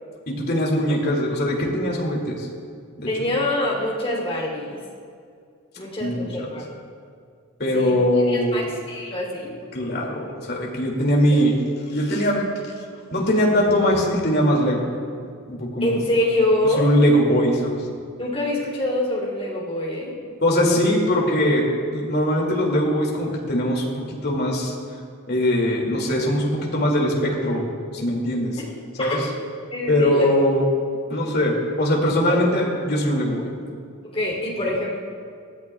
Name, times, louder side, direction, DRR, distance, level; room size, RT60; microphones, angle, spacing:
voice 1, 0.3-2.5 3.0-3.1 6.0-6.5 7.6-8.7 9.7-11.5 11.9-12.4 13.1-14.9 15.5-16.0 16.8-17.9 20.4-21.6 21.9-24.7 25.3-27.6 27.9-28.6 29.0-29.3 29.9-30.6 31.1-33.5, equal, 45° left, -2 dB, 2.4 m, -21 dB
voice 2, 3.1-4.8 5.8-6.7 7.7-9.5 15.8-16.8 18.2-20.1 28.6-29.2 29.7-30.3 32.3-32.4 34.1-35.0, left 1 dB, 25° left, -3 dB, 3.0 m, -25 dB
19.5 x 14.0 x 2.3 m, 2.3 s
head